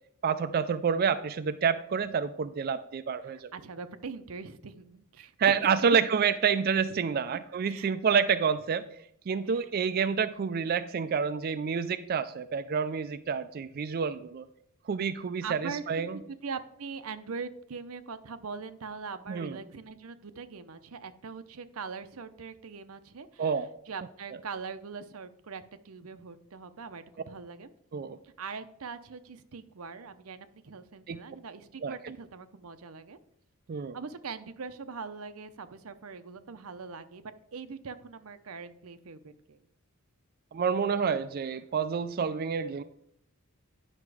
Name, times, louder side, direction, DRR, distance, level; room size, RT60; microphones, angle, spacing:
voice 1, 0.2-3.5 5.4-8.8 9.3-14.5 14.9-16.2 19.3-19.6 23.4-23.7 27.9-28.2 31.1-31.2 31.8-32.2 33.7-34.0 40.5-42.8, right 6 dB, 45° right, 10 dB, 0.3 m, -28 dB
voice 2, 3.2-5.5 5.8-6.0 7.3-7.4 7.7-7.9 9.5-9.7 15.4-27.7 28.2-33.2 33.9-39.6, right 5 dB, 90° right, 10 dB, 0.7 m, -42 dB
9.9 x 5.8 x 4.8 m, 0.72 s
head